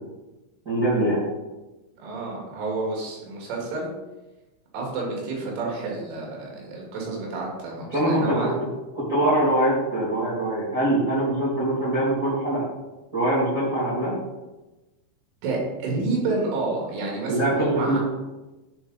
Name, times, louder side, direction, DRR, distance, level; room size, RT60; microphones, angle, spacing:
voice 1, 0.6-1.2 7.9-8.5 8.9-12.6 13.1-14.1 17.3-18.0, right 1 dB, 30° right, -8 dB, 1.6 m, -23 dB
voice 2, 2.0-3.9 4.7-8.5 15.4-18.0, right 3 dB, 80° right, -2 dB, 4.4 m, -29 dB
10.5 x 4.0 x 4.0 m, 1.1 s
omnidirectional pair, 5.6 m